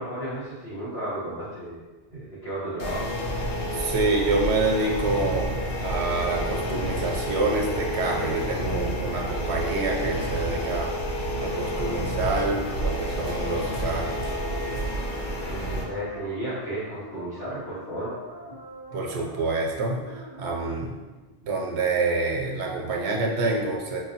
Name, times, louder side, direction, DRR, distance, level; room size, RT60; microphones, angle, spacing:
voice 1, 0.0-1.8 2.1-3.1 15.5-18.1, right 1 dB, 75° left, -13 dB, 1.3 m, -33 dB
sound 1, 2.8-15.8, equal, 55° left, 0.8 m, -29 dB
voice 2, 3.7-10.9 11.4-14.3 18.9-21.0 21.4-24.0, right 3 dB, 90° right, 0 dB, 0.9 m, -27 dB
sound 2, 11.5-20.7, equal, 35° right, 0.4 m, -44 dB
4.6 x 2.2 x 2.7 m, 1.3 s
omnidirectional pair, 1.1 m